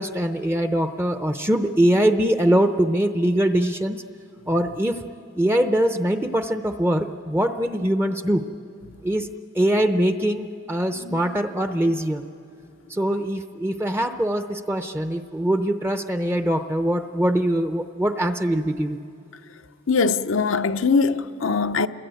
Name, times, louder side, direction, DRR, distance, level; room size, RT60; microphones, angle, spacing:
voice 1, 0.0-4.0 4.5-5.0 5.4-8.4 9.0-9.3 9.5-12.2 12.9-19.0, right 1 dB, 10° right, 0.6 m, -22 dB
voice 2, 19.9-21.9, left 4 dB, 75° left, 0.7 m, -22 dB
28.5 x 21.5 x 9.2 m
head